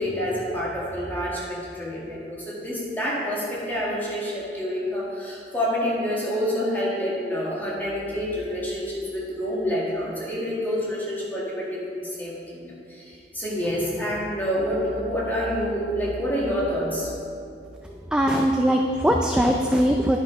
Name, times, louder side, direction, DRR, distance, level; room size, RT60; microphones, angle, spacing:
voice 1, 0.0-17.1, equal, 10° left, -6 dB, 1.9 m, -28 dB
voice 2, 18.1-20.2, equal, 5° right, 1 dB, 0.3 m, -20 dB
10.5 x 5.9 x 5.0 m, 2.4 s
head